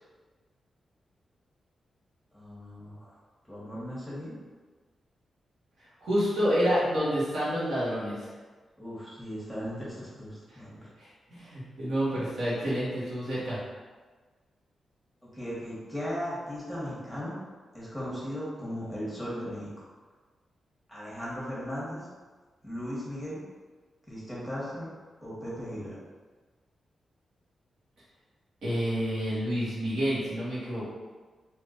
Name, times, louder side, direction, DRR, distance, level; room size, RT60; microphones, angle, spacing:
voice 1, 2.3-3.1 3.5-4.3 8.8-10.9 15.3-17.3 17.7-19.7 20.9-22.0 22.6-23.4 24.1-24.9 25.2-25.9, equal, 5° left, -8 dB, 1.4 m, -37 dB
voice 2, 6.0-8.3 11.0-13.6 28.6-30.9, equal, 80° right, -9 dB, 1.5 m, -28 dB
3.5 x 2.9 x 2.5 m, 1.4 s
cardioid pair, 80°, 0 cm